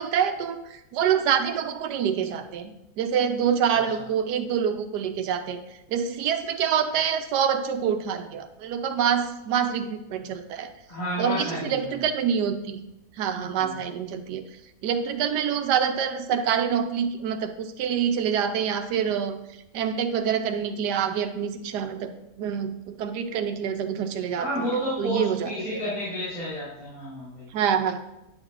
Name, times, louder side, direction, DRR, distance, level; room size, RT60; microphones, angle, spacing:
voice 1, 0.0-5.6 5.9-10.7 11.2-12.8 13.2-14.4 14.8-19.4 19.7-22.1 22.4-24.7 25.0-25.5 27.5-28.0, right 8 dB, 75° right, 8 dB, 1.2 m, -26 dB
voice 2, 3.7-4.0 10.9-11.9 13.5-13.7 24.4-27.5, equal, 70° left, -12 dB, 3.2 m, -31 dB
9.5 x 6.4 x 2.5 m, 0.93 s
omnidirectional pair, 1.8 m